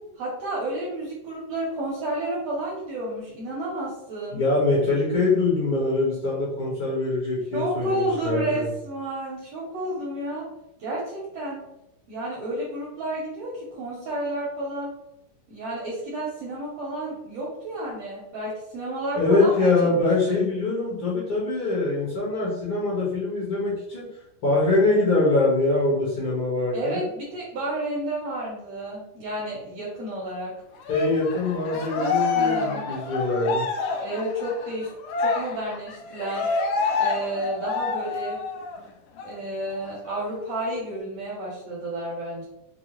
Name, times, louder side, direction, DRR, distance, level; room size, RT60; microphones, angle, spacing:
voice 1, 0.2-4.4 7.5-10.4 10.8-11.6 12.1-14.9 15.5-19.9 20.2-20.4 26.7-30.5 31.7-32.8 34.0-34.9 35.2-36.5 36.9-38.4 39.2-42.5, right 1 dB, 75° right, -6 dB, 1.5 m, -31 dB
voice 2, 4.3-8.6 19.1-24.0 24.4-27.0 30.9-33.6, left 2 dB, 60° left, -8 dB, 1.5 m, -23 dB
Cheering, 30.8-38.8 39.2-39.3 39.7-40.7, left 4 dB, 75° left, 1.9 m, -28 dB
5.2 x 2.0 x 2.9 m, 0.86 s
omnidirectional pair, 3.8 m